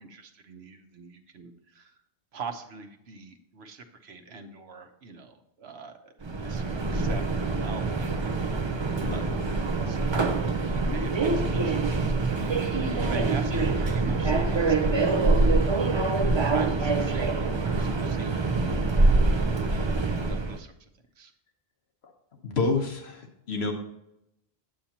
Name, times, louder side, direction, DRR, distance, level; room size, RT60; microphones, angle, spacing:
voice 1, 0.0-1.9 2.3-9.5 9.8-10.2 10.6-15.6 16.2-19.6 20.2-20.7 21.2-21.3, right 4 dB, 80° right, 6 dB, 1.2 m, -43 dB
Subway metro underground, 6.2-20.6, right 3 dB, 30° right, 0.6 m, -25 dB
voice 2, 9.0-9.3 22.4-23.7, left 3 dB, 80° left, 3 dB, 1.4 m, -28 dB
8.5 x 8.5 x 2.9 m, 0.82 s
omnidirectional pair, 1.1 m